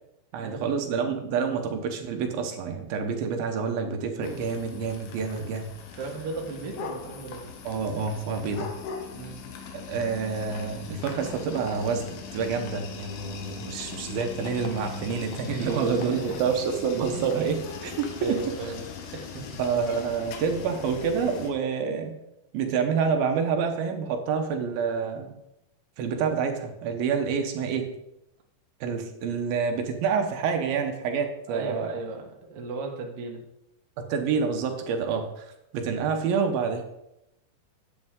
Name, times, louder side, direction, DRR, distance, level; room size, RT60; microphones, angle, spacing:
voice 1, 0.3-5.7 7.6-8.7 9.7-18.5 19.6-22.1 22.5-25.3 26.0-27.9 28.8-31.9 34.0-36.8, right 6 dB, 80° right, 5 dB, 2.8 m, -28 dB
sound 1, 4.2-21.5, left 6 dB, 80° left, 2.8 m, -40 dB
voice 2, 6.0-7.5 9.1-9.4 15.5-16.5 17.9-19.6 31.5-33.4, right 3 dB, 55° right, 1 dB, 1.8 m, -36 dB
10.5 x 8.5 x 3.7 m, 0.85 s
omnidirectional pair, 4.3 m